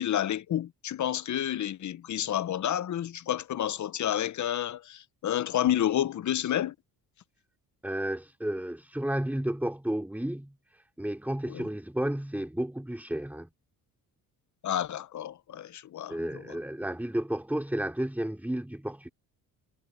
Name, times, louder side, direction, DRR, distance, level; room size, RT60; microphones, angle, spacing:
voice 1, 0.0-6.7 11.5-11.6 14.6-16.6, left 11 dB, 50° left, 0.9 m, -30 dB
voice 2, 7.8-13.5 16.1-19.1, right 1 dB, 5° right, 4.0 m, -32 dB
cardioid pair, 75°, 37 cm